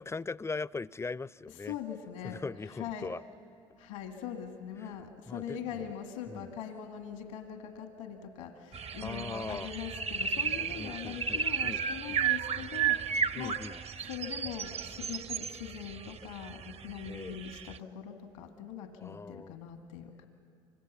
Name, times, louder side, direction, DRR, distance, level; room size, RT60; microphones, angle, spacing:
voice 1, 0.0-1.8 2.2-3.2 5.3-5.9 6.3-6.5 9.0-9.7 10.7-11.8 12.1-12.2 13.2-13.8 17.0-17.4 19.0-19.5, left 4 dB, 15° left, 0.5 m, -40 dB
voice 2, 1.6-3.1 3.8-13.6 14.0-20.3, left 8 dB, 85° left, 1.6 m, -42 dB
sound 1, 8.7-17.8, right 7 dB, 40° right, 0.7 m, -34 dB
25.5 x 25.5 x 7.1 m
hypercardioid pair, 60°, 16 cm